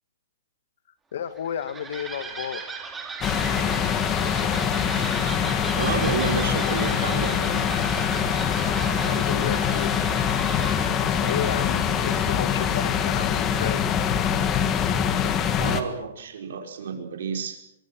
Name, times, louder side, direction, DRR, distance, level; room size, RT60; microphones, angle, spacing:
voice 1, 1.1-2.6 9.0-10.7 11.2-13.9, left 9 dB, 55° left, 13 dB, 1.4 m, -32 dB
sound 1, 1.3-13.8, right 5 dB, 10° right, 2.4 m, -37 dB
sound 2, 3.2-15.8, left 8 dB, 20° left, 1.6 m, -24 dB
voice 2, 5.8-7.7 15.6-17.6, right 6 dB, 65° right, 4 dB, 5.2 m, -30 dB
24.0 x 23.0 x 6.1 m, 0.82 s
hypercardioid pair, 170°, 0 cm